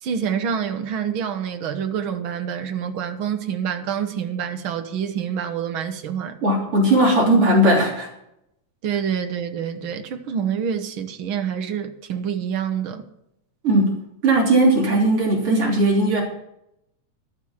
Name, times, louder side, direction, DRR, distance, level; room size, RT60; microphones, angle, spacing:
voice 1, 0.0-6.4 8.8-13.0, right 8 dB, 70° right, 1.2 m, -27 dB
voice 2, 6.4-8.1 13.6-16.2, right 1 dB, 45° right, 4.1 m, -18 dB
12.5 x 8.0 x 7.1 m
omnidirectional pair, 3.5 m